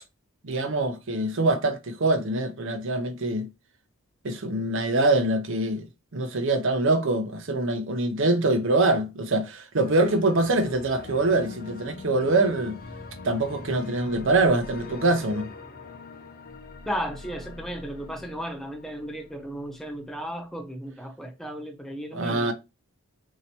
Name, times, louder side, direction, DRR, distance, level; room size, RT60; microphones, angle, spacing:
voice 1, 0.4-3.5 4.2-5.8 6.1-12.8 13.2-15.5 22.1-22.5, right 2 dB, 60° right, 0.7 m, -24 dB
sound 1, 9.8-19.8, left 3 dB, 45° left, 0.7 m, -42 dB
voice 2, 16.8-22.5, equal, ahead, 0.6 m, -35 dB
4.3 x 2.8 x 2.8 m
head